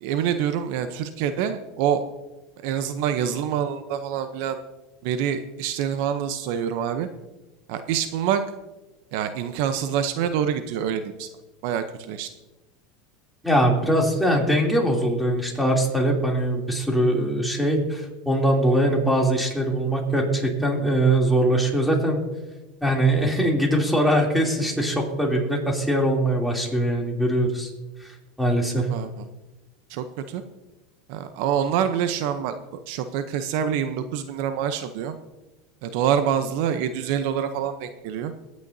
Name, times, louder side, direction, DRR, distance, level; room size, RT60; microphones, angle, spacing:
voice 1, 0.0-2.0 2.6-4.6 5.0-7.1 7.7-8.4 9.1-11.3 11.6-12.3 28.8-29.3 29.9-30.4 31.1-32.6 32.9-35.2 35.8-38.3, right 9 dB, 65° right, 9 dB, 0.7 m, -26 dB
voice 2, 13.4-22.2 22.8-27.7 28.0-28.9, right 1 dB, ahead, -1 dB, 3.0 m, -22 dB
21.5 x 9.5 x 2.7 m, 1.1 s
supercardioid pair, 115°, 0 cm